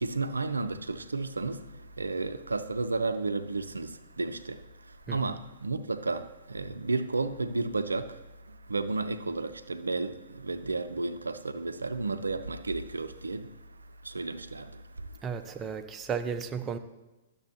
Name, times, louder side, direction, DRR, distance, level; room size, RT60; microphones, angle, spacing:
voice 1, 0.0-15.6, right 3 dB, 85° right, 0.4 m, -33 dB
voice 2, 15.2-16.8, right 6 dB, 20° right, 0.6 m, -34 dB
11.5 x 6.9 x 2.9 m
figure-of-eight pair, 115°, 0 cm